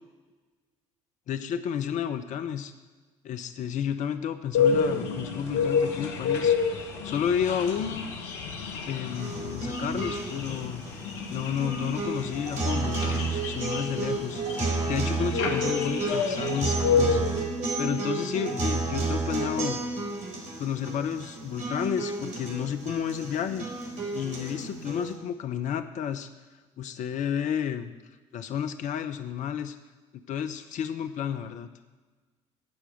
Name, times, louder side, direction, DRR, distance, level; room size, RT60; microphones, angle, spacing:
voice 1, 1.3-2.7 3.2-6.6 7.0-8.0 8.9-10.8 11.3-14.6 14.9-17.2 17.8-19.8 20.6-23.7 24.1-26.3 26.8-27.9 28.3-29.7 30.1-31.7, left 8 dB, 50° left, 9 dB, 0.8 m, -31 dB
sound 1, 4.5-17.4, left 6 dB, 75° left, 1.3 m, -29 dB
sound 2, 9.1-25.1, right 3 dB, 50° right, 4.0 m, -31 dB
14.5 x 4.9 x 7.6 m, 1.3 s
hypercardioid pair, 55°, 16 cm